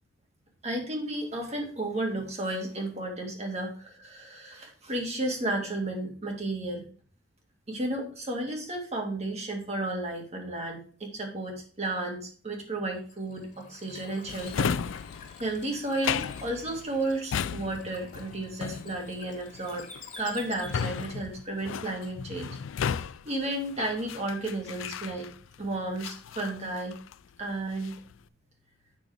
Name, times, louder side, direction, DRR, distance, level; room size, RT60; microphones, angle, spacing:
voice 1, 0.6-6.8 7.7-14.8 15.4-19.9 20.2-22.6 23.3-27.0 27.4-28.0, right 2 dB, 35° right, 2 dB, 2.1 m, -33 dB
Bird / Water, 13.0-21.4, left 4 dB, 40° left, 2.2 m, -49 dB
Drawer open or close, 14.3-25.6 26.0-27.3 27.6-28.1, left 7 dB, 85° left, 0.4 m, -35 dB
8.6 x 6.1 x 3.4 m, 0.42 s
head